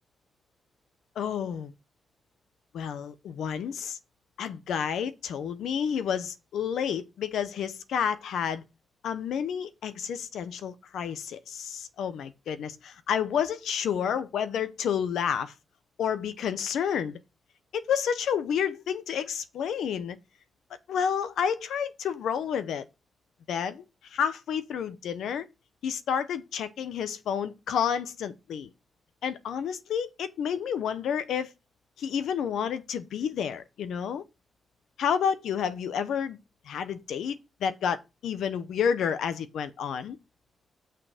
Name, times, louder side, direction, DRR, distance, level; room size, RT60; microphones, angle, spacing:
voice 1, 1.2-1.7 2.7-4.0 4.4-8.6 9.0-15.5 16.0-17.2 17.7-20.2 20.9-22.8 23.5-23.8 24.1-25.5 25.8-28.7 29.2-31.5 32.0-34.2 35.0-36.4 36.7-37.4 37.6-40.2, left 8 dB, 85° left, 0.8 m, -30 dB
7.0 x 6.2 x 5.0 m
wide cardioid pair, 160°, 0 cm